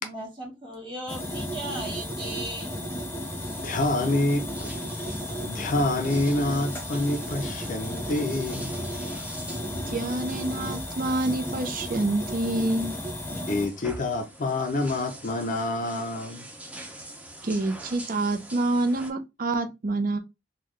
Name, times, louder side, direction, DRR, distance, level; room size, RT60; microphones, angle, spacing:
voice 1, 0.0-2.8, right 1 dB, 25° right, 1.6 m, -37 dB
sound 1, 1.1-13.7, equal, 10° left, 1.0 m, -34 dB
sound 2, 3.2-19.1, right 1 dB, 10° right, 0.7 m, -45 dB
voice 2, 3.6-4.7 5.4-8.7 13.5-16.5, left 2 dB, 45° left, 0.5 m, -27 dB
voice 3, 9.9-13.0 17.4-20.2, right 2 dB, 50° right, 0.6 m, -27 dB
3.8 x 2.2 x 3.1 m
head